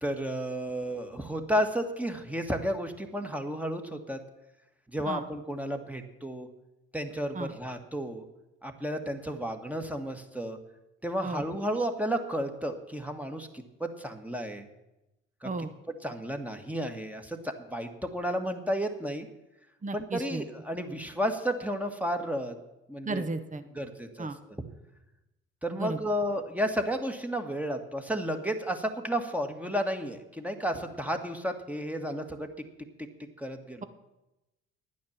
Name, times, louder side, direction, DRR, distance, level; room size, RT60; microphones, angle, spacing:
voice 1, 0.0-4.2 4.9-6.5 6.9-8.2 8.6-10.6 11.0-13.5 13.8-14.7 15.4-15.5 15.9-19.3 19.9-22.5 22.9-23.3 23.7-24.3 25.6-32.5 33.4-33.8, equal, 5° right, 5 dB, 1.7 m, -32 dB
voice 2, 19.8-20.4 23.0-23.6 24.2-24.4 25.8-26.0, right 3 dB, 20° right, 10 dB, 1.1 m, -33 dB
10.5 x 9.5 x 7.3 m, 0.95 s
hypercardioid pair, 50°, 34 cm